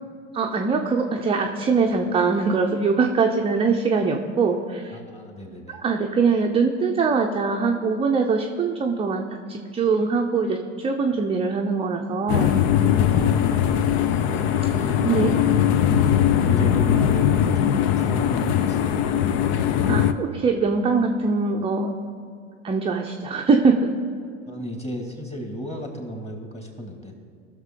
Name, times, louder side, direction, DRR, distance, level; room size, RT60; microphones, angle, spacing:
voice 1, 0.3-5.0 5.7-12.5 15.0-15.3 15.9-16.0 19.9-21.9 22.6-23.9, right 4 dB, 15° right, 2 dB, 0.6 m, -22 dB
voice 2, 4.9-5.8 13.1-14.2 15.0-15.8 16.4-19.1 24.5-27.1, left 1 dB, 15° left, 2 dB, 2.2 m, -33 dB
sound 1, 12.3-20.1, left 9 dB, 55° left, 0.7 m, -20 dB
17.5 x 6.6 x 3.7 m, 2.3 s
hypercardioid pair, 90°, 40 cm